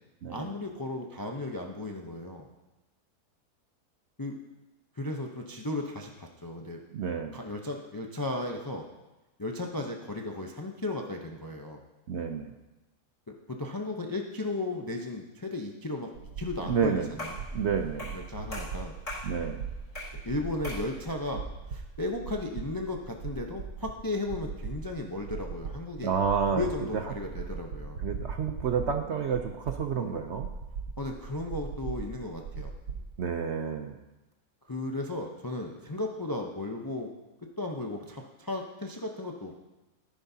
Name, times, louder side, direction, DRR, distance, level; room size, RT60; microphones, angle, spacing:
voice 1, 0.3-2.5 4.2-4.4 4.9-6.8 7.3-8.9 9.4-11.8 13.3-17.3 18.1-18.9 20.2-21.4 21.7-26.1 26.5-28.0 29.9-30.2 31.0-32.7 34.6-37.1 37.6-39.5, left 2 dB, 25° left, 2 dB, 0.4 m, -35 dB
voice 2, 6.9-7.4 12.1-12.5 16.6-17.1 17.5-18.1 19.2-19.6 26.0-26.7 27.1-27.2 28.0-30.5 33.2-34.0, right 6 dB, 60° right, 5 dB, 0.7 m, -30 dB
sound 1, 16.2-33.3, right 6 dB, 80° right, 1.3 m, -40 dB
sound 2, 17.2-17.5 18.0-18.2 18.5-19.3 19.9-20.2 20.6-20.9, left 1 dB, 50° left, 4.1 m, -39 dB
13.5 x 11.0 x 2.8 m, 1.1 s
omnidirectional pair, 1.7 m